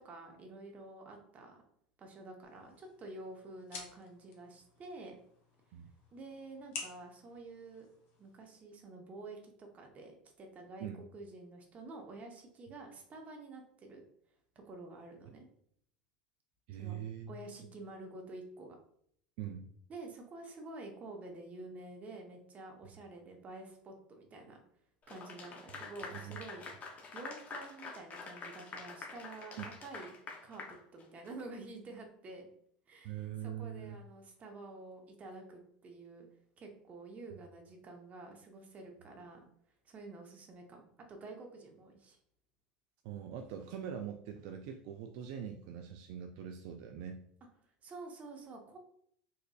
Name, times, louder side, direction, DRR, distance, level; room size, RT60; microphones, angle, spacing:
voice 1, 0.0-1.6 2.0-5.2 6.1-7.9 8.2-14.0 14.6-15.5 16.8-17.0 17.3-18.8 19.9-24.6 25.1-26.7 27.1-30.1 30.4-30.6 30.9-32.5 32.9-36.3 36.6-39.4 39.8-40.8 41.1-42.2 47.8-48.8, right 2 dB, 35° right, 2 dB, 0.9 m, -49 dB
sound 1, 2.4-8.5, left 4 dB, 50° left, 1.1 m, -51 dB
voice 2, 16.7-17.3 19.4-19.7 26.1-26.4 29.6-29.7 33.0-33.9 37.3-37.4 43.0-47.2, right 9 dB, 65° right, 5 dB, 0.3 m, -43 dB
Clapping / Applause, 25.1-31.4, left 4 dB, 35° left, 0.7 m, -47 dB
4.1 x 2.5 x 2.4 m, 0.67 s
hypercardioid pair, 85°, 5 cm